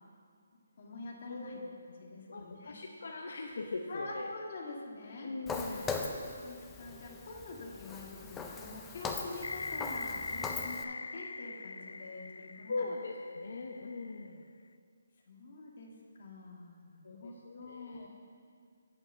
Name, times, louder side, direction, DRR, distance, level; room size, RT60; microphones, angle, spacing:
voice 1, 0.8-1.6 1.9-2.8 3.9-5.3 5.6-5.9 6.2-12.9 15.3-15.9 16.2-18.1, left 2 dB, 40° left, -1 dB, 1.6 m, -46 dB
voice 2, 1.3-1.7 2.3-4.3 5.2-6.1 12.7-14.5 17.0-18.1, left 3 dB, 65° left, 2 dB, 0.8 m, -40 dB
Walk footsteps, 5.5-10.8, left 4 dB, 5° left, 0.3 m, -40 dB
sound 1, 9.4-14.3, left 3 dB, 80° left, 0.3 m, -42 dB
8.6 x 6.1 x 6.6 m, 2.2 s
hypercardioid pair, 170°, 0 cm